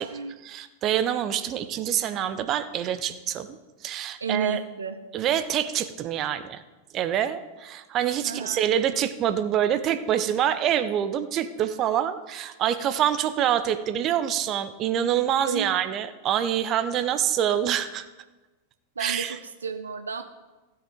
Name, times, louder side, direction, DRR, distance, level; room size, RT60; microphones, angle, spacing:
voice 1, 0.4-3.6 3.8-4.6 5.1-6.6 6.9-18.1 19.0-19.4, right 10 dB, 35° right, 11 dB, 0.7 m, -26 dB
voice 2, 4.2-5.0 8.2-8.7 15.5-15.8 19.0-20.2, right 5 dB, 75° right, 8 dB, 0.6 m, -32 dB
15.5 x 8.0 x 3.7 m, 1.2 s
figure-of-eight pair, 90°, 0 cm